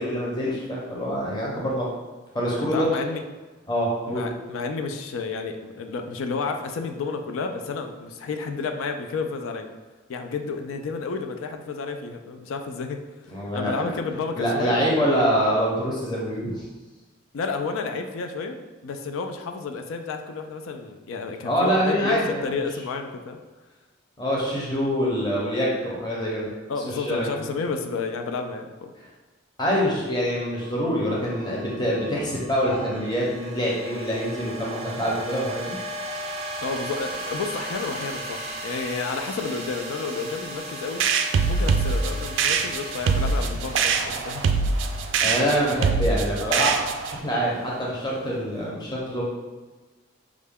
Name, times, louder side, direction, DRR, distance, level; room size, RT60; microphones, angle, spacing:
voice 1, 0.0-1.9 2.3-2.8 3.7-4.2 13.3-13.9 14.3-16.6 21.4-22.4 24.2-26.5 26.8-27.5 29.0-29.1 29.6-35.7 45.2-46.8 47.0-49.2, equal, 20° left, -4 dB, 0.6 m, -25 dB
voice 2, 2.6-3.2 4.1-9.7 10.1-13.0 13.5-14.9 17.3-23.4 26.7-28.9 36.6-41.0 41.5-44.4 45.1-45.2, left 4 dB, 90° left, 6 dB, 0.4 m, -31 dB
sound 1, 30.3-48.6, right 1 dB, 35° right, 0.6 m, -37 dB
sound 2, 41.0-47.2, right 5 dB, 65° right, 0.3 m, -23 dB
4.8 x 2.2 x 3.5 m, 1.3 s
head